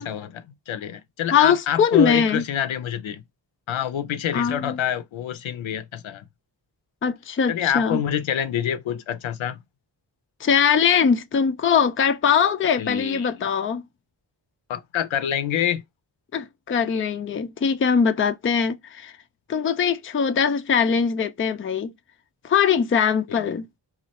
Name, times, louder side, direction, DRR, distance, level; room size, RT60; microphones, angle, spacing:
voice 1, 0.0-3.2 3.7-6.2 7.5-9.6 12.8-13.3 14.7-15.8 23.3-23.6, left 10 dB, 80° left, 0.6 m, -27 dB
voice 2, 1.3-2.5 4.3-4.8 7.0-8.0 10.4-13.8 16.3-19.1 19.5-21.9 22.4-23.7, left 7 dB, 30° left, 0.4 m, -21 dB
3.0 x 2.5 x 4.0 m
wide cardioid pair, 100°, 46 cm